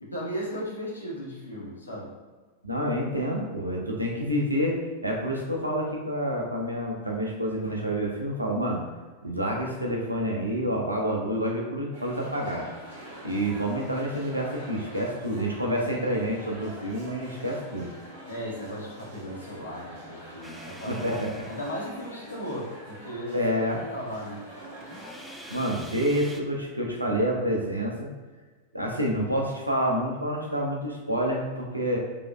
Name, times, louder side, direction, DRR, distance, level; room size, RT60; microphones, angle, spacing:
voice 1, 0.0-2.1 18.3-21.2 21.5-23.4 23.9-24.4, equal, 80° left, -4 dB, 1.0 m, -36 dB
voice 2, 2.6-8.8 9.2-12.7 13.2-17.9 20.9-21.4 23.3-23.8 25.5-28.1 28.7-32.0, equal, 85° right, -1 dB, 0.7 m, -28 dB
sound 1, 11.9-25.9, equal, 55° right, 1.2 m, -45 dB
sound 2, 20.4-22.5 24.8-26.4, right 1 dB, 5° right, 0.3 m, -46 dB
5.0 x 3.0 x 2.3 m, 1.4 s
figure-of-eight pair, 90°, 0 cm